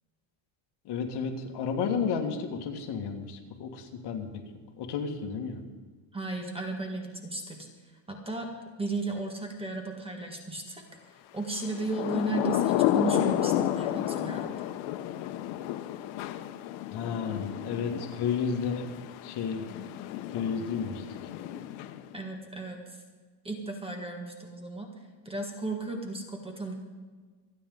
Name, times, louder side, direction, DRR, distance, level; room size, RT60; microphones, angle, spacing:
voice 1, 0.9-4.3 4.8-5.6 16.9-18.9 19.2-19.7 20.3-21.0, left 6 dB, 55° left, 3 dB, 2.0 m, -32 dB
voice 2, 6.1-7.7 8.1-8.5 8.8-14.7 22.1-23.0 23.4-24.9 25.3-26.7, right 3 dB, 10° right, 3 dB, 1.7 m, -35 dB
Thunder / Rain, 11.7-22.2, left 12 dB, 75° left, 0.9 m, -31 dB
27.0 x 9.4 x 3.9 m, 1.4 s
cardioid pair, 160°, 48 cm